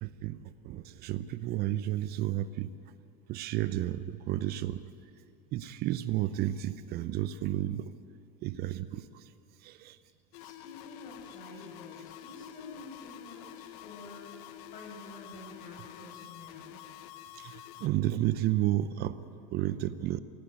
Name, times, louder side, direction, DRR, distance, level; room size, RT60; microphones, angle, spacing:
voice 1, 0.0-2.7 3.3-4.8 5.5-7.9 8.4-9.3 9.6-10.0 17.3-19.2 19.5-20.2, right 13 dB, 50° right, 14 dB, 0.7 m, -32 dB
sound 1, 10.3-17.9, left 13 dB, 65° left, 1.0 m, -48 dB
voice 2, 10.4-14.4 14.7-16.8, left 2 dB, 40° left, 1 dB, 7.3 m, -49 dB
18.5 x 15.5 x 9.3 m, 2.5 s
supercardioid pair, 100°, 21 cm